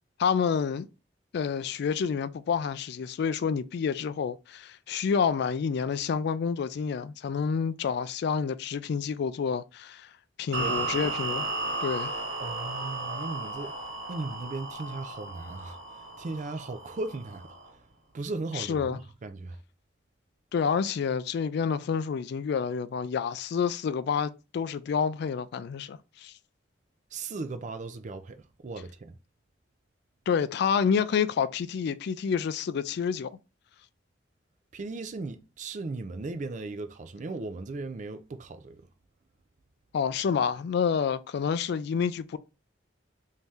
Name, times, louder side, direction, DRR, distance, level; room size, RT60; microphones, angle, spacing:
voice 1, 0.2-0.9 1.3-10.1 10.4-11.5 11.8-12.1 18.6-19.0 20.5-26.3 30.3-33.3 39.9-42.4, left 6 dB, 60° left, 0.3 m, -28 dB
voice 2, 10.5-11.1 12.4-17.8 18.1-19.6 27.1-29.2 34.7-38.9, right 3 dB, 40° right, 0.4 m, -37 dB
sound 1, 10.5-17.7, right 2 dB, 80° right, 1.2 m, -35 dB
3.1 x 2.8 x 3.5 m
head